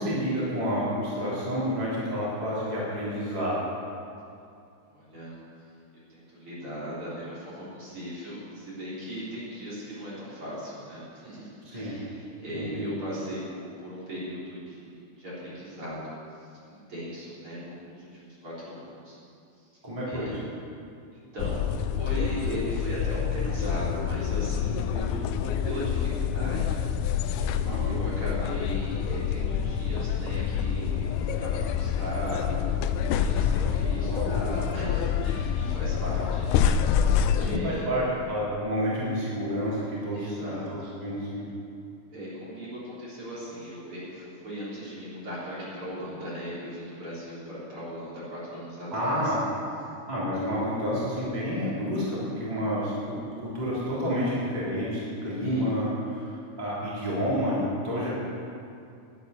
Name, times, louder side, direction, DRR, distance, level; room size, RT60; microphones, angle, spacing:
voice 1, 0.0-3.6 11.7-12.0 12.5-12.9 19.8-20.3 27.7-27.9 34.1-34.4 37.4-41.4 48.9-49.4 50.1-56.3 56.6-58.1, equal, 15° right, -8 dB, 3.4 m, -29 dB
voice 2, 4.9-5.4 5.9-18.1 18.4-19.2 19.6-19.7 20.1-20.3 21.1-26.8 27.3-36.6 36.9-37.2 37.4-37.8 40.1-40.9 42.1-49.3 55.4-55.6, equal, 45° right, -9 dB, 4.3 m, -38 dB
sound 1, 21.4-37.6, left 8 dB, 90° left, 2.1 m, -27 dB
10.5 x 8.9 x 9.6 m, 2.5 s
omnidirectional pair, 3.4 m